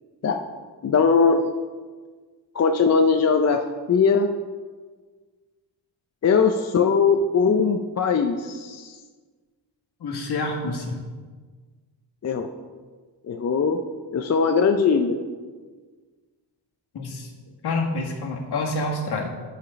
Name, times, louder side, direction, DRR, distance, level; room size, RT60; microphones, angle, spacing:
voice 1, 0.8-1.5 2.5-3.6 3.9-4.3 6.2-8.9 12.2-12.5 13.3-13.8 14.1-15.2, left 5 dB, 40° left, 4 dB, 0.5 m, -20 dB
voice 2, 10.0-11.0 16.9-17.3 17.6-19.3, left 2 dB, 65° left, 0 dB, 1.7 m, -27 dB
10.0 x 5.1 x 5.2 m, 1.4 s
cardioid pair, 110°, 42 cm